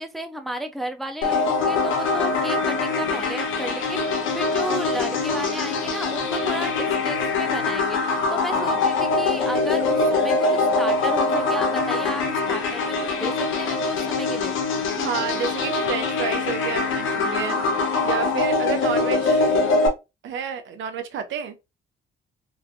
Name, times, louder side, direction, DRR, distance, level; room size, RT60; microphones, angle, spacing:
voice 1, 0.0-14.6, right 1 dB, ahead, 0.4 m, -33 dB
sound 1, 1.2-19.9, left 3 dB, 80° left, 0.9 m, -23 dB
voice 2, 15.0-17.6 18.0-19.5 20.2-21.6, right 6 dB, 75° right, 0.7 m, -30 dB
3.1 x 2.5 x 2.5 m
cardioid pair, 90°, 20 cm